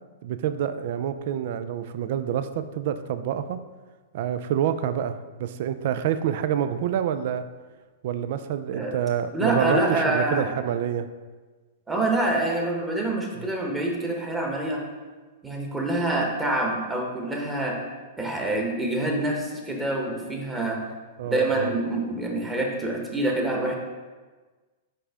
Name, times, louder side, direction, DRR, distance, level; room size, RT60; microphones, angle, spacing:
voice 1, 0.2-3.6 4.1-7.5 8.0-11.1 13.4-13.5 21.2-21.7, right 9 dB, 60° right, 11 dB, 0.3 m, -27 dB
voice 2, 9.3-10.5 11.9-14.8 15.4-17.8 18.2-20.8 21.2-23.8, right 2 dB, 15° right, 0 dB, 1.3 m, -26 dB
5.3 x 5.0 x 3.6 m, 1.3 s
hypercardioid pair, 110°, 0 cm